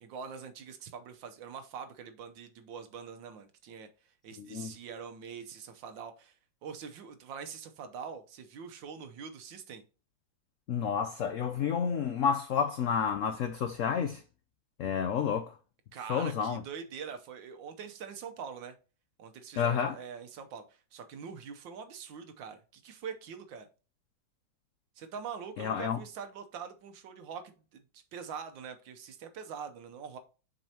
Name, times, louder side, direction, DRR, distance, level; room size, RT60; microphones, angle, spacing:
voice 1, 0.0-9.8 15.9-18.8 19.2-23.7 25.0-27.4 27.7-30.2, right 6 dB, 80° right, 1.5 m, -44 dB
voice 2, 4.4-4.7 10.7-14.2 14.8-15.5 16.1-16.6 19.6-20.0 25.6-26.0, left 7 dB, 90° left, 0.7 m, -30 dB
7.5 x 5.4 x 2.8 m
omnidirectional pair, 2.0 m